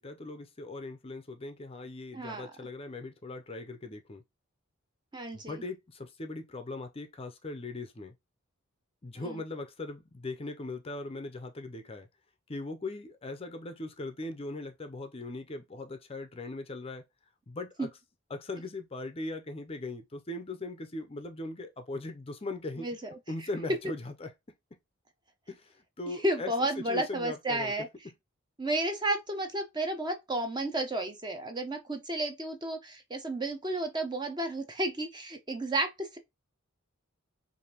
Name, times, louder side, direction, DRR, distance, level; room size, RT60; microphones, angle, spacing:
voice 1, 0.0-4.2 5.3-8.1 9.0-12.1 12.5-17.1 17.5-17.9 18.3-22.9 23.3-24.3 25.5-27.7 28.0-28.1, left 2 dB, 25° left, 0.5 m, -39 dB
voice 2, 2.1-2.5 5.1-5.6 9.2-9.4 17.8-17.9 22.8-23.0 26.2-27.9 28.6-36.2, right 1 dB, 20° right, 0.7 m, -32 dB
5.0 x 2.6 x 2.9 m
head